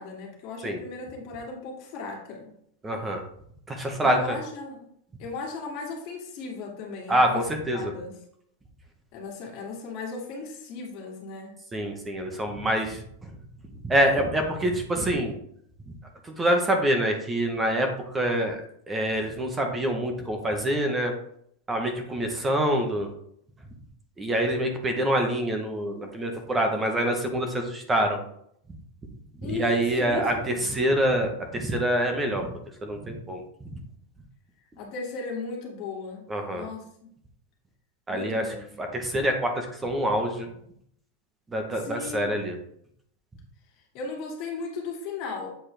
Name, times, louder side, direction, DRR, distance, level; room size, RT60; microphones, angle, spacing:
voice 1, 0.0-2.5 4.0-4.9 5.2-7.4 7.7-8.2 9.1-11.5 29.4-30.8 34.8-36.2 36.5-36.8 38.1-38.7 41.7-42.4 43.9-45.5, left 4 dB, 40° left, -1 dB, 2.2 m, -36 dB
voice 2, 2.8-3.2 3.7-4.4 7.1-7.9 11.7-13.3 13.8-15.3 16.2-18.6 18.9-21.1 21.7-23.1 24.2-28.2 29.4-32.5 32.8-33.4 33.7-33.8 36.3-36.6 38.1-38.5 38.8-40.5 41.5-42.6, right 1 dB, 10° right, 4 dB, 0.9 m, -26 dB
8.0 x 4.4 x 3.3 m, 0.69 s
supercardioid pair, 150°, 0 cm